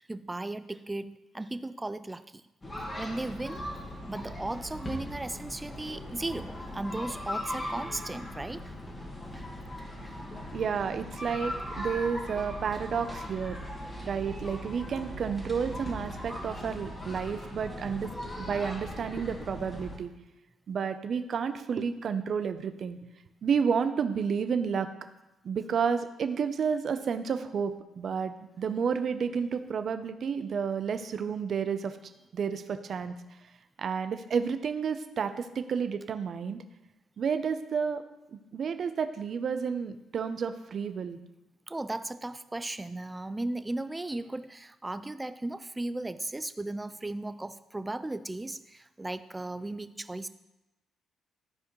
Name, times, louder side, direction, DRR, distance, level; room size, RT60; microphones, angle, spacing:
voice 1, 0.1-2.4 3.0-3.6 4.1-8.7 9.3-9.5 10.0-10.1 41.7-50.3, right 2 dB, 15° right, 12 dB, 0.4 m, -36 dB
sound 1, 2.6-20.0, equal, 25° left, 1.9 m, -39 dB
voice 2, 10.5-13.6 14.0-18.1 18.4-20.1 20.7-23.0 23.4-24.9 25.4-31.9 32.3-33.1 33.8-36.6 37.2-38.0 38.3-41.2, right 6 dB, 55° right, 9 dB, 0.6 m, -31 dB
14.0 x 4.9 x 3.1 m, 0.95 s
cardioid pair, 90°, 0 cm